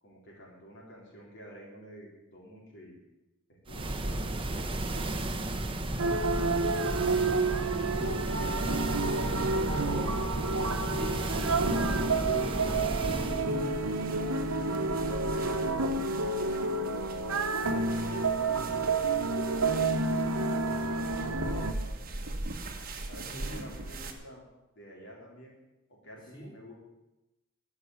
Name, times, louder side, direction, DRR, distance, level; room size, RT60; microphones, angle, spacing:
voice 1, 0.0-3.0 3.5-5.1 16.3-17.1 17.6-18.6 20.3-22.3 23.1-24.4 24.7-25.5 26.0-26.8, equal, 60° left, -3 dB, 3.6 m, -49 dB
sound 1, 3.7-13.5, right 1 dB, 25° right, 1.1 m, -33 dB
sound 2, 6.0-21.7, right 3 dB, 90° right, 1.0 m, -29 dB
voice 2, 8.3-8.8 9.2-13.8 23.3-23.6 26.3-26.5, equal, 20° left, -4 dB, 3.7 m, -44 dB
sound 3, 9.3-24.1, right 2 dB, 45° right, 1.4 m, -42 dB
13.0 x 6.0 x 9.4 m, 1.0 s
head